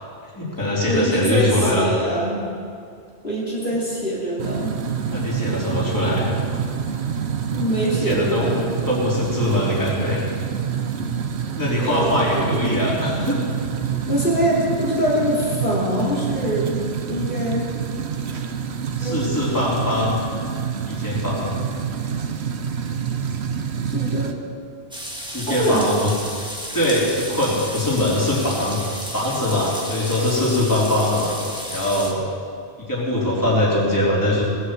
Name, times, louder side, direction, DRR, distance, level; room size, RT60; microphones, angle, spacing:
voice 1, 0.3-1.9 5.1-6.3 8.0-8.4 8.9-10.2 11.5-13.4 19.0-20.2 20.9-21.6 25.3-26.1 26.7-28.8 29.1-31.4 31.7-32.2 32.8-34.4, left 1 dB, 15° left, -6 dB, 3.5 m, -22 dB
voice 2, 0.9-2.5 3.2-4.7 7.5-8.7 11.8-12.5 14.1-16.7 17.1-17.7 19.0-19.2 23.9-24.3 25.5-25.9, equal, 50° left, -6 dB, 3.0 m, -23 dB
sound 1, 4.4-24.3, right 7 dB, 80° right, 1.1 m, -27 dB
sound 2, 24.9-32.1, equal, 5° right, 1.5 m, -33 dB
18.5 x 8.1 x 7.6 m, 2.3 s
omnidirectional pair, 1.1 m